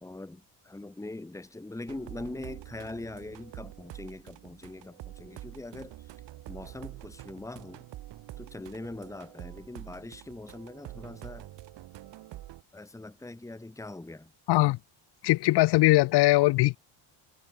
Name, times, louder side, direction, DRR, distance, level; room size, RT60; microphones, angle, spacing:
voice 1, 0.0-6.0 6.5-7.9 8.4-11.5 12.7-14.3, left 2 dB, 5° left, 1.7 m, -42 dB
sound 1, 1.9-12.6, right 15 dB, 65° right, 3.4 m, -46 dB
voice 2, 14.5-14.8 15.2-16.8, left 19 dB, 60° left, 0.6 m, -21 dB
cardioid pair, 105°, 46 cm